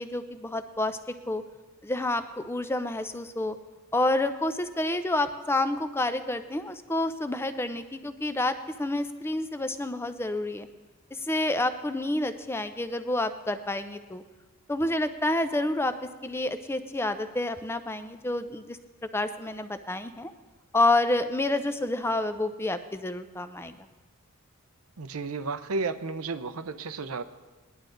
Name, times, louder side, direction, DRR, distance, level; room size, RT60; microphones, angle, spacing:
voice 1, 0.0-1.4 1.8-3.6 3.9-10.7 11.1-14.2 14.7-15.9 16.2-18.8 19.1-20.3 20.7-23.8, left 2 dB, 10° left, 10 dB, 0.5 m, -29 dB
voice 2, 25.0-27.2, right 4 dB, 75° right, 12 dB, 0.7 m, -32 dB
18.5 x 11.0 x 3.9 m, 1.2 s
head